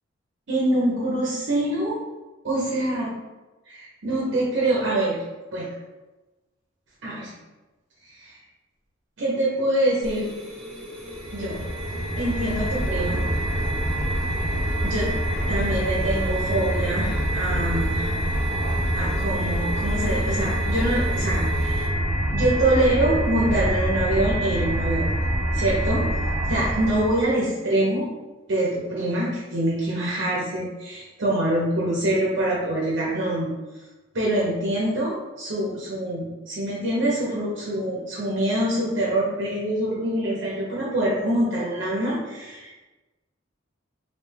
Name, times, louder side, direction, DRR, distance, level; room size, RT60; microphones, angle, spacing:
voice 1, 0.5-2.0 2.4-3.1 3.7-5.2 5.5-5.7 7.0-7.3 8.1-8.4 9.2-10.3 11.3-11.7 12.2-13.2 14.8-15.1 15.5-18.2 18.9-21.9 22.3-25.1 25.5-26.1 26.5-28.1 28.5-33.5 34.1-42.8, right 1 dB, 65° right, -5 dB, 0.7 m, -25 dB
sound 1, 10.0-21.9, left 1 dB, 5° left, 0.8 m, -38 dB
sound 2, 11.1-27.3, right 1 dB, 75° left, 1.0 m, -25 dB
3.2 x 2.7 x 3.3 m, 1.1 s
head